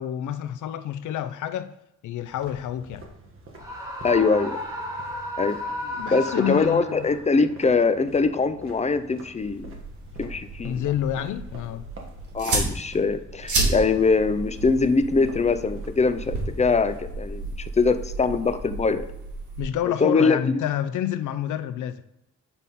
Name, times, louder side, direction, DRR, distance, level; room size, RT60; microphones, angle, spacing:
voice 1, 0.0-1.7 2.0-3.0 5.8-7.1 10.6-11.9 19.6-22.0, left 10 dB, 80° left, 0.5 m, -29 dB
sound 1, 2.3-17.0, right 2 dB, 45° right, 1.5 m, -47 dB
Screaming, 3.6-7.2, left 1 dB, 10° right, 1.5 m, -33 dB
voice 2, 4.0-4.6 5.4-5.6 6.1-9.8 10.2-10.9 12.3-19.0 20.0-20.6, left 4 dB, 25° left, 0.5 m, -22 dB
sound 2, 9.3-19.6, right 2 dB, 80° right, 2.5 m, -32 dB
8.3 x 3.5 x 4.2 m
cardioid pair, 90°, 30 cm